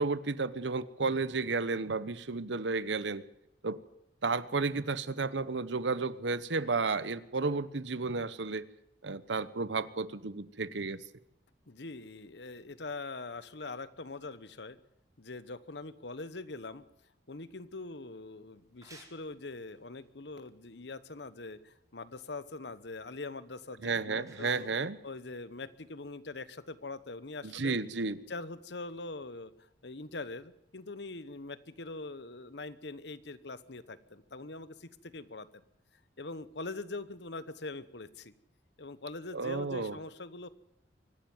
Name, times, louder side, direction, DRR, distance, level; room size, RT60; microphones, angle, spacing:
voice 1, 0.0-3.2 3.6-3.8 4.2-8.7 9.0-11.0 23.8-25.0 27.4-28.2 39.3-40.0, right 4 dB, 80° right, 16 dB, 1.0 m, -32 dB
voice 2, 11.7-14.8 15.2-16.8 17.3-24.7 25.0-27.8 28.3-29.5 29.8-35.6 36.2-38.3 38.8-40.5, left 3 dB, 70° left, 15 dB, 1.1 m, -43 dB
sound 1, 18.5-25.9, right 2 dB, 20° right, 4.5 m, -61 dB
24.5 x 12.0 x 9.3 m, 0.82 s
head